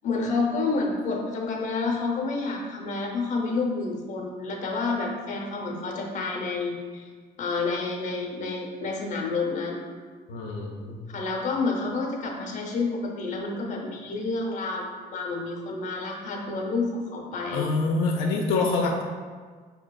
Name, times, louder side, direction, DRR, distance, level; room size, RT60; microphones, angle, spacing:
voice 1, 0.0-7.1 7.4-9.9 11.1-17.7, left 3 dB, 45° left, 0 dB, 0.7 m, -29 dB
voice 2, 10.3-11.0 17.5-19.0, left 3 dB, 90° left, 0 dB, 0.4 m, -26 dB
4.9 x 2.7 x 2.2 m, 1.5 s
cardioid pair, 110°, 17 cm